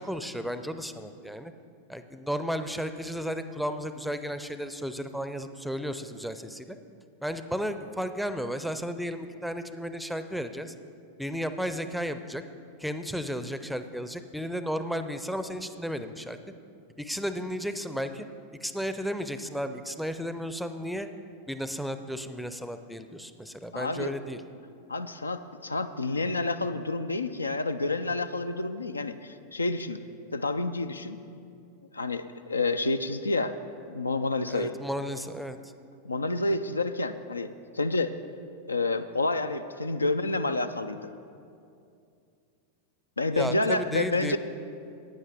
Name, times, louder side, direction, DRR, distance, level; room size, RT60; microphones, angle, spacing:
voice 1, 0.0-1.5 1.9-6.8 7.2-10.7 11.2-12.4 12.8-16.4 17.0-18.3 18.6-21.1 21.5-24.4 34.5-35.7 43.3-44.4, equal, ahead, 9 dB, 0.5 m, -33 dB
voice 2, 23.7-24.1 24.9-30.0 30.3-31.2 31.9-33.6 33.9-34.7 36.0-38.1 38.7-41.1 43.2-44.4, left 2 dB, 80° left, 11 dB, 0.4 m, -29 dB
15.5 x 9.4 x 3.5 m, 2.5 s
figure-of-eight pair, 90°, 0 cm